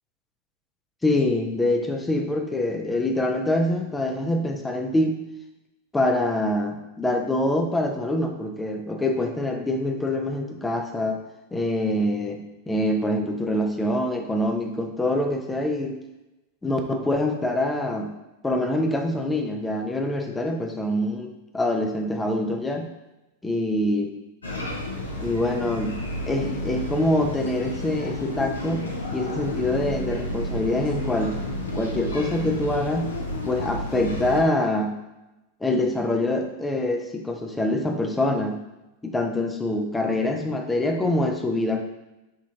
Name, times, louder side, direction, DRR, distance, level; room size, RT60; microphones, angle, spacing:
voice 1, 1.0-5.2 5.9-11.2 11.5-16.0 16.6-18.1 18.4-22.9 23.4-24.1 25.2-26.0 26.3-31.4 31.7-33.1 33.4-35.0 35.6-38.6 39.0-41.8, left 1 dB, 10° left, 3 dB, 0.5 m, -25 dB
sound 1, 24.4-34.4, left 1 dB, 75° left, 0.6 m, -31 dB
4.9 x 2.4 x 2.7 m, 0.98 s
figure-of-eight pair, 90°, 0 cm